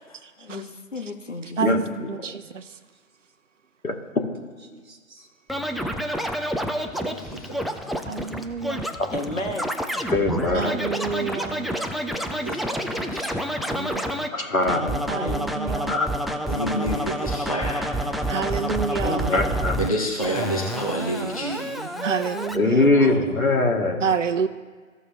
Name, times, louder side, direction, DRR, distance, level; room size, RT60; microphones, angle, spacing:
voice 1, 0.4-1.6 2.0-2.1 9.1-9.8 14.8-15.5 19.0-19.6 22.7-23.3, left 2 dB, 60° left, 2 dB, 1.4 m, -32 dB
voice 2, 1.6-2.6 8.1-8.9 10.5-11.7 15.1-15.9 18.3-19.3 22.0-22.8 24.0-24.5, right 6 dB, 60° right, 10 dB, 0.7 m, -28 dB
voice 3, 4.7-5.3 13.7-14.3 18.0-18.2 21.4-22.1, right 3 dB, 80° right, 1 dB, 1.1 m, -39 dB
Scratching (performance technique), 5.5-14.3 14.7-19.9 20.2-22.6, equal, ahead, 0.3 m, -29 dB
voice 4, 6.9-7.6 12.4-13.4 16.5-17.9 18.5-18.6 19.8-21.6 22.9-23.1, right 1 dB, 25° left, -2 dB, 0.7 m, -29 dB
voice 5, 10.1-10.8 14.3-14.8 15.9-16.1 19.3-19.7 22.5-24.0, left 2 dB, 80° left, 2 dB, 1.8 m, -21 dB
15.5 x 6.8 x 2.3 m, 1.5 s
figure-of-eight pair, 160°, 42 cm